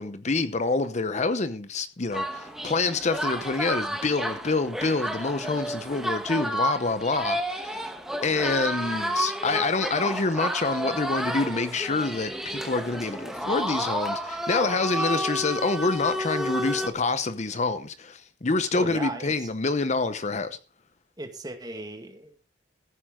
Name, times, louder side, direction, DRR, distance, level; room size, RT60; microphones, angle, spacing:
voice 1, 0.0-7.9 8.2-20.6, left 3 dB, 40° left, 0.8 m, -27 dB
sound 1, 2.1-16.9, equal, ahead, 1.3 m, -31 dB
voice 2, 18.7-19.5 21.2-22.5, right 1 dB, 25° right, 1.8 m, -37 dB
14.5 x 9.5 x 3.7 m
head